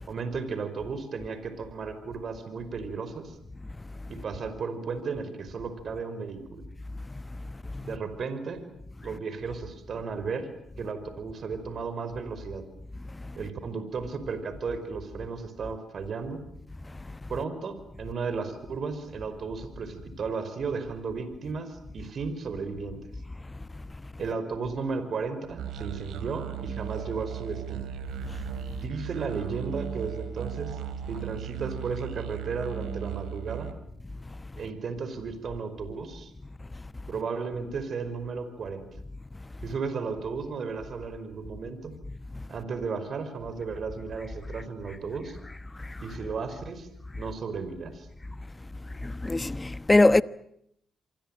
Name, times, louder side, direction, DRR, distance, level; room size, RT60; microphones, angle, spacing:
voice 1, 0.1-3.3 4.1-6.6 7.8-8.6 9.0-10.5 10.8-12.7 13.3-16.4 17.3-23.0 24.2-27.9 28.7-30.8 31.1-33.7 34.6-36.3 37.1-38.9 39.6-41.9 42.5-45.4 46.0-46.9 47.1-48.1, right 5 dB, 60° right, 5.1 m, -34 dB
sound 1, 25.6-33.7, right 9 dB, 80° right, 2.8 m, -36 dB
voice 2, 49.0-50.2, left 2 dB, 20° left, 1.1 m, -22 dB
27.5 x 23.5 x 9.1 m
supercardioid pair, 60°, 0 cm